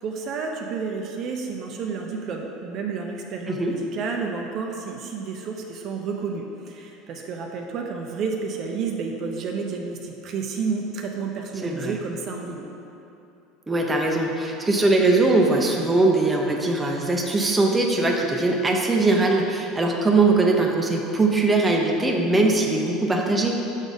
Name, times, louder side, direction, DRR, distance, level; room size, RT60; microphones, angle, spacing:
voice 1, 0.0-12.6, right 5 dB, 45° right, 2 dB, 0.6 m, -31 dB
voice 2, 11.6-12.0 13.7-23.6, right 2 dB, 10° right, 0 dB, 0.6 m, -21 dB
6.1 x 4.0 x 5.3 m, 2.8 s
supercardioid pair, 130°, 0 cm